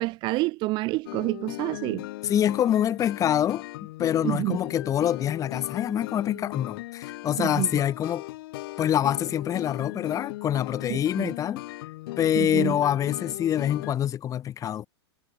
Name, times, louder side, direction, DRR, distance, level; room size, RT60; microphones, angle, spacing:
voice 1, 0.0-2.1 4.2-4.6 7.4-7.7 10.9-11.3 12.3-12.8, right 21 dB, 35° right, 0.9 m, -28 dB
sound 1, 1.1-13.9, left 18 dB, 55° left, 7.4 m, -38 dB
voice 2, 2.2-8.3 8.8-11.6 12.2-14.9, left 10 dB, 25° left, 4.6 m, -25 dB
supercardioid pair, 145°, 14 cm